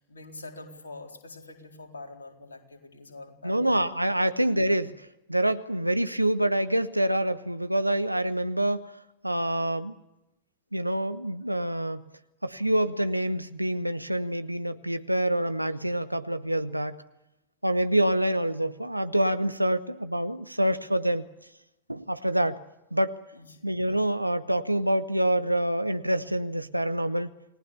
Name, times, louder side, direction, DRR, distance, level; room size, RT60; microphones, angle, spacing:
voice 1, 0.0-3.7 23.3-23.6, left 2 dB, 75° left, 3 dB, 4.1 m, -45 dB
voice 2, 3.4-8.9 9.2-9.9 10.7-12.0 12.4-17.0 17.6-21.3 21.9-22.6 22.9-23.2 23.6-27.3, right 1 dB, 85° right, 12 dB, 1.0 m, -26 dB
29.0 x 19.0 x 7.0 m, 0.91 s
figure-of-eight pair, 90°, 0 cm